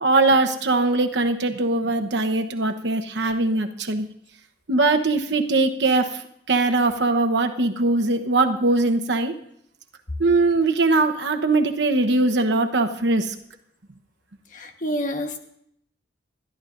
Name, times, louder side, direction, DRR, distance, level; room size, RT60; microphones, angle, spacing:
voice 1, 0.0-4.1 4.7-6.1 6.5-9.3 10.2-13.3, right 2 dB, 75° right, 6 dB, 1.0 m, -21 dB
voice 2, 14.5-15.4, equal, 45° left, 5 dB, 1.3 m, -28 dB
21.0 x 12.5 x 2.6 m, 0.70 s
head